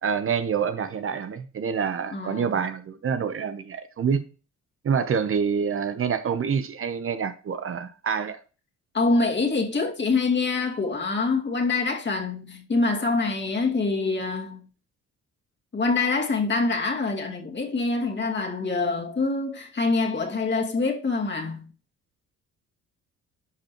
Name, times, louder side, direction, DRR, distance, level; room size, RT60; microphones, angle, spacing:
voice 1, 0.0-4.2 4.8-8.4, right 6 dB, 45° right, 0.8 m, -27 dB
voice 2, 2.1-2.5 8.9-14.7 15.7-21.7, left 3 dB, 40° left, 2.2 m, -25 dB
11.0 x 5.2 x 3.0 m
cardioid pair, 90°, 30 cm